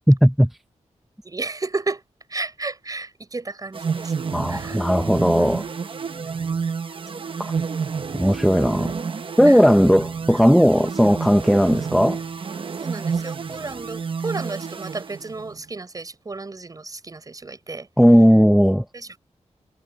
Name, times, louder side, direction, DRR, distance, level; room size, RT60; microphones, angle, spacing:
voice 1, 0.1-0.5 4.3-5.7 8.1-8.9 9.4-12.2 18.0-18.8, equal, ahead, 0.7 m, -16 dB
voice 2, 1.2-2.0 2.3-4.1 4.5-4.9 9.4-9.7 12.8-17.9 18.9-19.2, right 3 dB, 30° right, 6.6 m, -33 dB
sound 1, 3.7-15.6, right 5 dB, 45° right, 0.9 m, -30 dB
wide cardioid pair, 150°, 12 cm